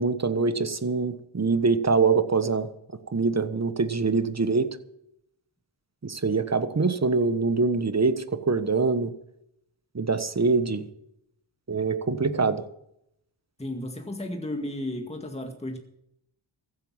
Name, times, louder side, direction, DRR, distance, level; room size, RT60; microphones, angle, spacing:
voice 1, 0.0-2.7 3.1-4.7 6.0-9.1 9.9-10.9 11.7-12.6, right 4 dB, 30° right, 11 dB, 1.3 m, -24 dB
voice 2, 13.6-15.8, left 1 dB, 15° left, 3 dB, 2.0 m, -33 dB
15.0 x 8.9 x 7.4 m, 0.78 s
cardioid pair, 65°, 49 cm